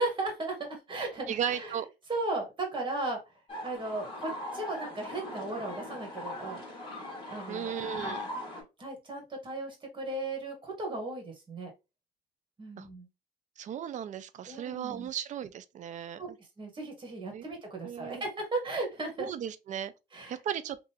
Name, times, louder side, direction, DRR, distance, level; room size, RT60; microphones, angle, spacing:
voice 1, 0.0-1.7 2.1-3.2 3.6-6.6 7.3-8.2 8.8-11.7 12.6-13.1 14.5-15.1 16.2-16.3 16.6-19.3 20.1-20.4, right 2 dB, 30° right, 1.5 m, -36 dB
voice 2, 1.3-1.9 7.5-8.3 12.8-12.9 13.6-16.4 17.3-17.4 17.8-18.2 19.2-19.9 20.3-20.8, right 9 dB, 45° right, 0.4 m, -36 dB
sound 1, 3.5-8.6, left 1 dB, 30° left, 1.7 m, -40 dB
3.7 x 2.5 x 2.9 m
cardioid pair, 110°, 17 cm